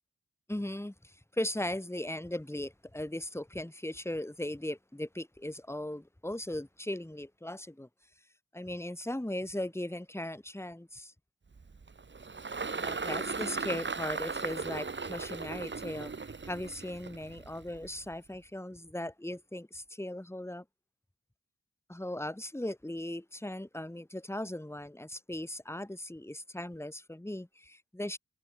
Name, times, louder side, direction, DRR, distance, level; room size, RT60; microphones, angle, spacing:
voice 1, 0.5-7.9 8.5-11.1 12.7-16.1 16.5-20.6 21.9-28.2, left 1 dB, 10° left, 3.4 m, -38 dB
Engine, 11.5-18.1, right 4 dB, 35° right, 1.5 m, -37 dB
wide cardioid pair, 105°, 30 cm